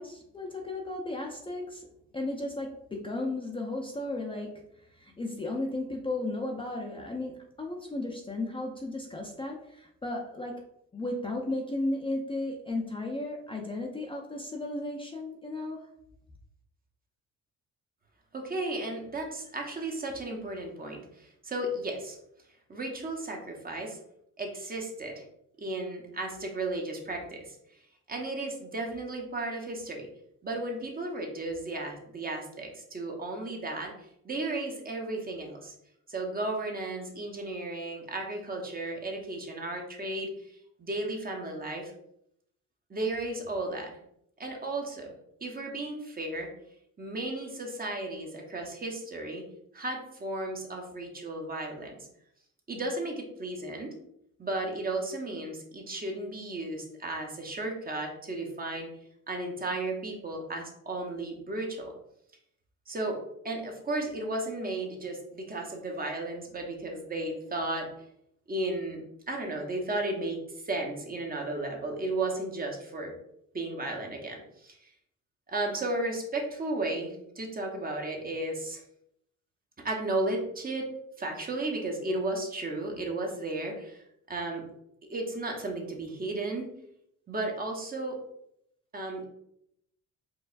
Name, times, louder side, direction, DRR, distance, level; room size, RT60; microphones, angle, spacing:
voice 1, 0.0-1.9 2.1-4.5 4.9-10.6 10.9-15.9, left 2 dB, 15° left, 0 dB, 0.5 m, -34 dB
voice 2, 18.3-22.2 22.7-24.0 24.4-25.2 25.6-27.6 28.1-30.1 30.4-33.9 34.2-35.7 36.1-40.3 40.8-41.9 42.9-43.9 44.4-45.1 45.4-46.5 47.0-49.4 49.7-51.9 52.7-53.9 54.4-58.9 59.3-61.9 62.9-63.2 63.4-67.9 68.5-69.0 69.3-70.4 70.6-73.1 73.5-74.8 75.5-78.8 79.8-80.9 81.2-84.6 85.1-86.7 87.3-88.2 88.9-89.3, right 2 dB, 30° right, 1 dB, 0.8 m, -34 dB
4.6 x 2.4 x 2.4 m, 0.75 s
cardioid pair, 90°, 30 cm